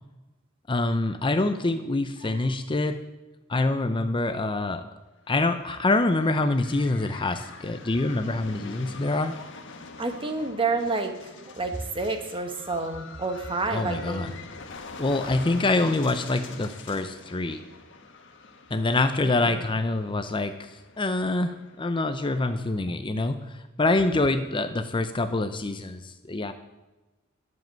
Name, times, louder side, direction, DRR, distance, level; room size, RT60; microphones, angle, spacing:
voice 1, 0.7-3.0 3.5-4.8 5.3-9.3 13.7-14.3 15.0-17.6 18.7-26.5, left 2 dB, 25° left, 9 dB, 0.6 m, -26 dB
sound 1, 5.2-22.8, left 4 dB, 60° left, 1.4 m, -45 dB
voice 2, 10.0-14.3 19.2-19.6, right 3 dB, 25° right, 6 dB, 1.3 m, -29 dB
11.0 x 7.4 x 9.0 m, 1.1 s
head